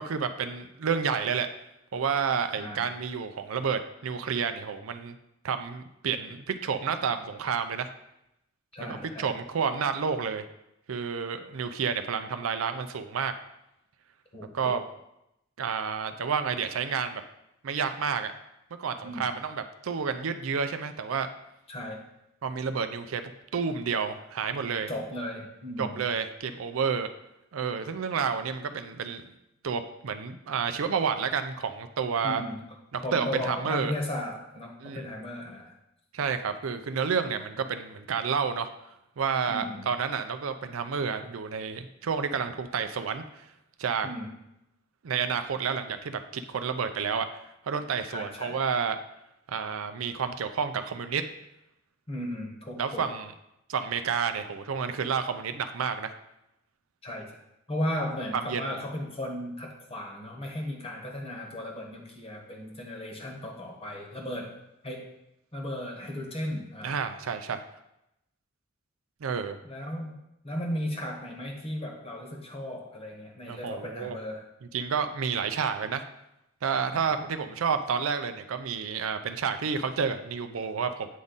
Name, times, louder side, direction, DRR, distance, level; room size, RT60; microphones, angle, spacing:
voice 1, 0.0-1.5 1.9-5.2 5.4-7.9 8.8-10.4 10.9-13.3 14.5-14.8 15.6-17.2 17.6-18.3 18.7-21.3 22.4-23.2 23.5-24.9 25.8-27.1 27.5-29.2 29.6-32.4 33.1-33.9 34.8-35.0 36.1-38.7 39.2-43.2 43.8-44.1 45.0-47.3 47.7-49.0 49.5-51.2 52.8-53.3 53.7-56.1 58.5-58.7 66.8-67.6 69.2-69.6 73.5-74.2 74.7-76.0 76.6-81.1, right 6 dB, 80° right, 9 dB, 0.5 m, -30 dB
voice 2, 2.6-2.9 8.7-9.3 14.3-14.8 19.0-19.3 21.7-22.0 24.9-26.0 32.2-32.7 33.0-35.7 39.5-39.9 44.0-44.3 48.1-48.6 52.1-53.1 57.0-57.3 57.7-64.5 64.8-65.1 65.5-67.0 69.6-74.5 76.9-77.1, left 1 dB, 30° left, 1 dB, 1.2 m, -36 dB
8.3 x 3.6 x 4.0 m, 0.84 s
head